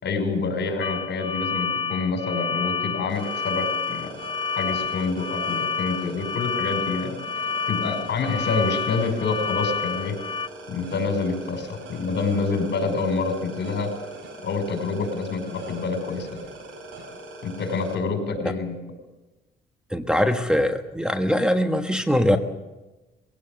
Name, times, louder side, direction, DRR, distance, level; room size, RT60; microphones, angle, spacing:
voice 1, 0.0-4.1 4.5-7.2 7.7-10.2 10.7-13.9 14.4-16.4 17.4-18.7, left 4 dB, 65° left, 4 dB, 5.7 m, -27 dB
sound 1, 0.8-10.5, left 5 dB, 25° left, 0.6 m, -29 dB
sound 2, 3.1-17.9, right 2 dB, 80° right, 6.0 m, -41 dB
voice 2, 19.9-22.4, equal, 5° right, 4 dB, 1.4 m, -22 dB
21.0 x 17.0 x 7.7 m, 1.1 s
cardioid pair, 90°, 20 cm